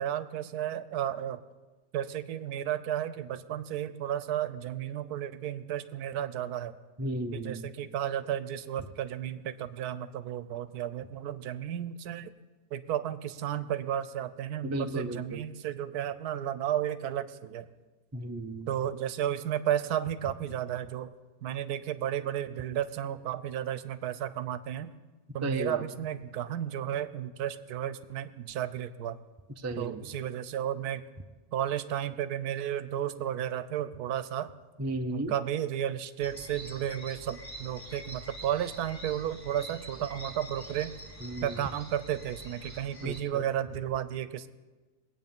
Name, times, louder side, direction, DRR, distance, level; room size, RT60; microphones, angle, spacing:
voice 1, 0.0-1.4 1.9-6.8 7.3-12.3 12.7-17.7 18.7-21.1 21.4-24.9 25.3-29.2 29.8-31.0 31.5-34.5 35.1-40.9 41.4-44.5, right 10 dB, 85° right, 14 dB, 1.2 m, -33 dB
voice 2, 7.0-7.7 14.6-15.5 18.1-18.7 25.4-25.8 29.6-30.1 34.8-35.3 41.2-41.6 43.0-43.4, right 1 dB, 20° right, 6 dB, 0.4 m, -34 dB
sound 1, 36.2-43.2, right 1 dB, 20° left, 1.8 m, -45 dB
21.0 x 8.6 x 5.4 m, 1.2 s
omnidirectional pair, 1.6 m